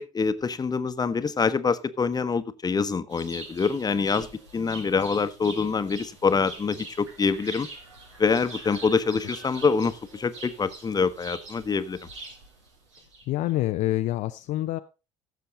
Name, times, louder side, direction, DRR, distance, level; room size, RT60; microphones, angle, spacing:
voice 1, 0.0-4.3 4.5-7.7 8.2-12.0, left 5 dB, 25° left, 13 dB, 1.0 m, -25 dB
sound 1, 3.1-13.5, right 3 dB, 80° right, 2.1 m, -44 dB
voice 2, 13.3-14.8, left 15 dB, 55° left, 9 dB, 0.5 m, -26 dB
15.5 x 6.8 x 3.9 m, 0.30 s
figure-of-eight pair, 50°, 15 cm